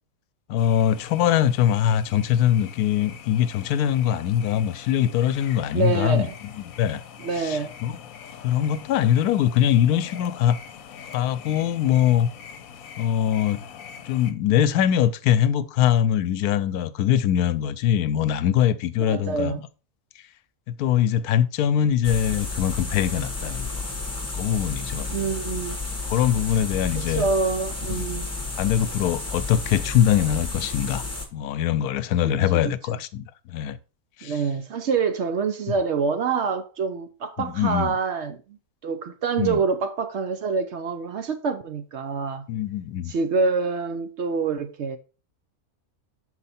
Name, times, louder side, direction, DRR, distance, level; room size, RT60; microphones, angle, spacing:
voice 1, 0.5-6.3 6.8-7.0 7.4-7.9 8.4-10.6 11.1-12.3 13.0-13.6 14.0-19.5 20.7-23.8 24.3-25.1 26.1-27.2 28.6-31.0 31.3-33.8 34.2-34.4 37.4-37.9 39.4-39.6 42.5-43.1, left 10 dB, 90° left, 1.1 m, -22 dB
sound 1, 0.6-14.3, left 8 dB, 70° left, 1.1 m, -43 dB
voice 2, 5.7-6.3 7.2-7.7 19.0-19.6 25.1-25.8 26.9-28.3 32.2-32.7 34.2-38.6 38.8-42.5 43.1-45.0, right 4 dB, 60° right, 0.7 m, -26 dB
sound 2, 22.0-31.3, left 3 dB, 10° left, 0.9 m, -31 dB
6.5 x 4.7 x 4.1 m
omnidirectional pair, 1.6 m